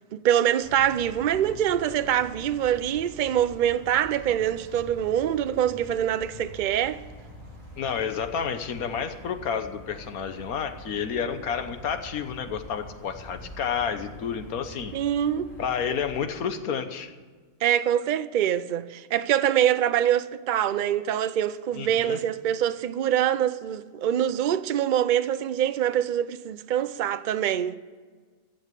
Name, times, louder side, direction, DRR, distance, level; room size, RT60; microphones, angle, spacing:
voice 1, 0.0-7.0 14.9-15.5 17.6-27.8, right 10 dB, 70° right, 0.4 m, -24 dB
sound 1, 0.6-16.2, equal, 35° left, 4.4 m, -45 dB
voice 2, 7.8-14.9 15.6-17.1 21.7-22.2, left 7 dB, 85° left, 1.4 m, -30 dB
14.5 x 7.1 x 8.2 m
omnidirectional pair, 1.5 m